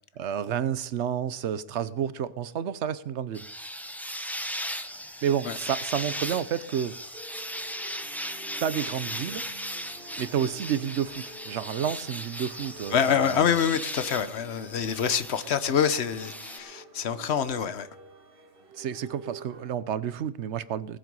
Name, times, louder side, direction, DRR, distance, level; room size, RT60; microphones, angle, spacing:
voice 1, 0.2-3.4 5.2-7.0 8.6-9.4 10.2-13.6 18.7-21.0, right 9 dB, 75° right, 1.0 m, -30 dB
sound 1, 3.3-16.6, equal, ahead, 0.7 m, -38 dB
sound 2, 7.1-19.7, right 3 dB, 50° right, 1.7 m, -49 dB
voice 2, 12.9-17.9, left 7 dB, 65° left, 1.1 m, -26 dB
18.5 x 7.7 x 5.4 m
omnidirectional pair, 1.2 m